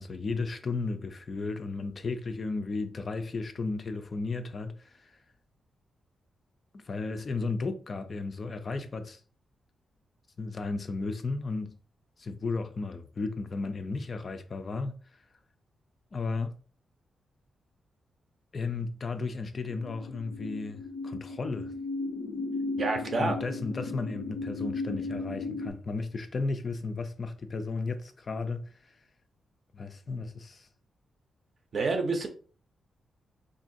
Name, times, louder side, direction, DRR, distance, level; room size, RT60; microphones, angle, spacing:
voice 1, 0.0-5.2 6.7-9.2 10.4-11.8 12.2-14.9 16.1-16.6 18.5-21.7 22.9-29.0 29.7-30.7, left 3 dB, 30° left, 0.3 m, -34 dB
sound 1, 19.7-25.7, left 3 dB, 80° left, 0.6 m, -36 dB
voice 2, 22.8-23.4 31.7-32.3, right 3 dB, 40° right, 0.5 m, -28 dB
3.7 x 2.5 x 2.5 m
wide cardioid pair, 170°, 0 cm